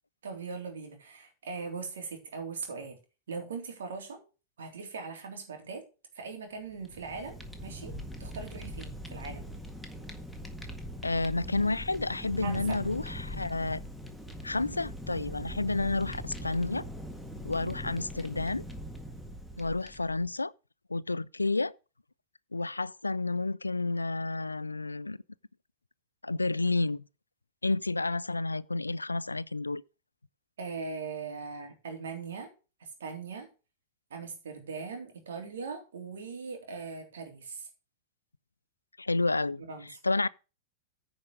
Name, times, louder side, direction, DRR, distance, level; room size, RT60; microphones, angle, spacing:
voice 1, 0.2-3.0 3.3-4.2 4.6-5.8 6.1-7.4 7.6-9.5 12.4-12.8 30.6-32.5 32.8-33.5 34.1-37.7 39.7-40.0, right 4 dB, 70° right, 3.3 m, -40 dB
Fire, 6.7-20.3, equal, ahead, 1.7 m, -41 dB
voice 2, 11.0-13.8 14.4-16.8 17.4-18.6 19.6-20.5 20.9-21.7 22.5-25.2 26.2-27.0 27.6-29.8 39.0-39.6 40.0-40.3, left 3 dB, 90° left, 0.4 m, -30 dB
9.8 x 5.3 x 6.3 m
figure-of-eight pair, 95°, 0 cm